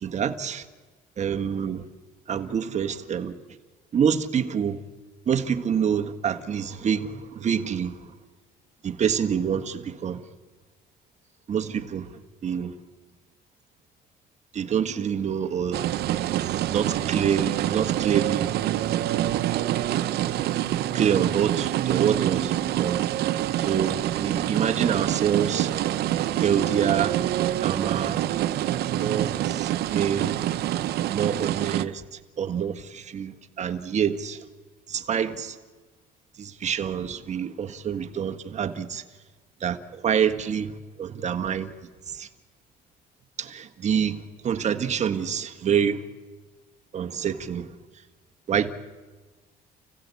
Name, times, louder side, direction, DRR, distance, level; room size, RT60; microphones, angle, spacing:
voice 1, 0.0-0.6 1.2-1.9 2.3-3.4 3.9-4.8 5.2-8.0 8.8-10.2 11.5-12.1 12.4-12.7 14.5-15.8 16.2-18.5 20.9-22.5 22.8-23.0 23.6-25.7 26.4-27.2 27.6-28.3 28.9-30.4 31.1-32.0 32.4-34.4 34.9-35.6 36.4-39.0 39.6-41.7 42.1-42.3 43.4-46.0 46.9-47.7 48.5-48.7, right 8 dB, 45° right, 1.6 m, -27 dB
sound 1, 15.7-31.8, right 13 dB, 70° right, 0.9 m, -26 dB
30.0 x 15.5 x 8.4 m
cardioid pair, 110°, 17 cm